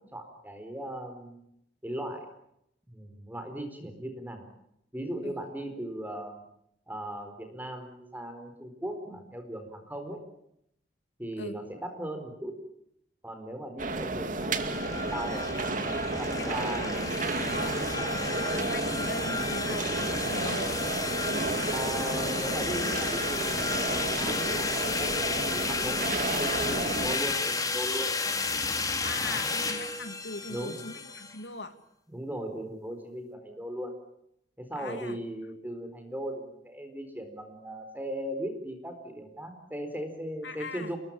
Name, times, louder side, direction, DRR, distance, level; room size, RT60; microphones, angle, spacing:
voice 1, 0.0-1.4 1.8-2.3 2.9-4.5 4.9-6.4 6.9-10.2 11.2-12.5 13.2-15.5 16.2-16.9 21.7-28.1 29.2-29.6 30.5-30.8 32.1-33.9 34.6-41.0, right 1 dB, 10° right, 6 dB, 4.2 m, -38 dB
sound 1, 13.8-27.2, right 2 dB, 50° right, 2.3 m, -32 dB
sound 2, 14.6-31.4, left 3 dB, 20° left, 3.0 m, -32 dB
voice 2, 16.2-20.8 29.0-31.8 34.7-35.2 40.4-41.0, left 3 dB, 85° left, 8 dB, 2.7 m, -41 dB
29.0 x 21.0 x 8.9 m, 0.78 s
head